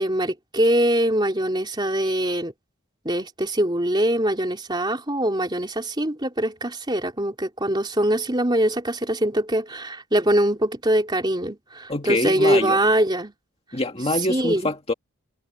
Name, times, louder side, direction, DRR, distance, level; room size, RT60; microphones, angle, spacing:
voice 1, 0.0-2.5 3.1-13.3 14.3-14.7, right 1 dB, 20° right, 3.4 m, -23 dB
voice 2, 11.9-12.8 13.7-14.9, left 2 dB, 25° left, 2.1 m, -25 dB
head